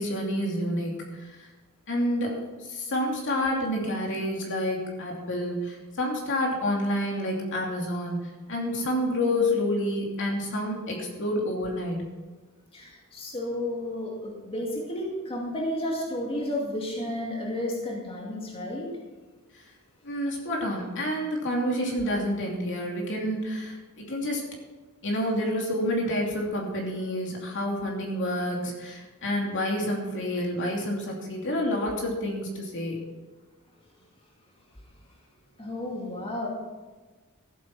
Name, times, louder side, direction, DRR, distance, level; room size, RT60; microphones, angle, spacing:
voice 1, 0.0-1.5 1.9-12.1 20.0-24.4 25.0-33.1, left 1 dB, 55° left, -1 dB, 2.8 m, -29 dB
voice 2, 12.7-18.9 35.6-36.5, left 1 dB, 25° left, -2 dB, 2.3 m, -32 dB
14.0 x 8.3 x 6.0 m, 1.3 s
head